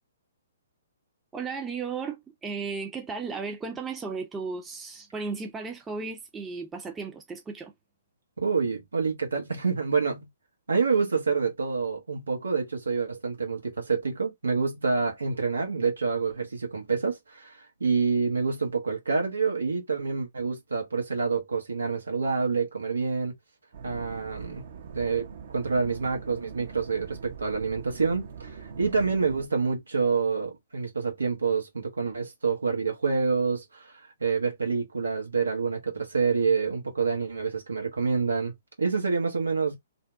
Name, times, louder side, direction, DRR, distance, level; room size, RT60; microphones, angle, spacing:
voice 1, 1.3-7.7, right 4 dB, 15° right, 0.5 m, -35 dB
voice 2, 8.4-10.3 10.7-23.3 23.8-24.6 24.9-25.3 25.5-38.5 38.8-39.8, right 5 dB, 85° right, 1.0 m, -27 dB
sound 1, 23.7-29.5, right 6 dB, 55° right, 0.7 m, -43 dB
2.6 x 2.0 x 3.3 m
figure-of-eight pair, 125°, 0 cm